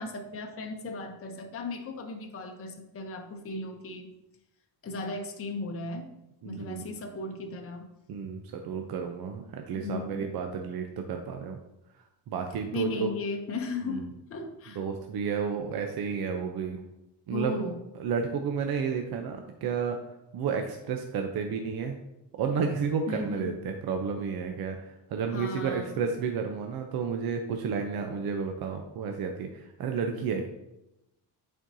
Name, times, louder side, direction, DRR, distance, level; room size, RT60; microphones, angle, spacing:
voice 1, 0.0-4.1 4.8-6.1 6.4-7.9 8.2-8.4 9.7-10.2 12.7-14.8 17.3-17.8 23.1-23.6 25.3-26.1, left 2 dB, 35° left, 3 dB, 0.8 m, -36 dB
voice 2, 6.4-6.8 8.1-11.6 12.3-13.1 13.9-14.0 14.8-16.8 17.3-17.6 18.0-20.0 20.3-22.0 22.4-30.5, right 6 dB, 65° right, 4 dB, 0.7 m, -31 dB
8.8 x 4.4 x 2.7 m, 0.89 s
cardioid pair, 125°, 39 cm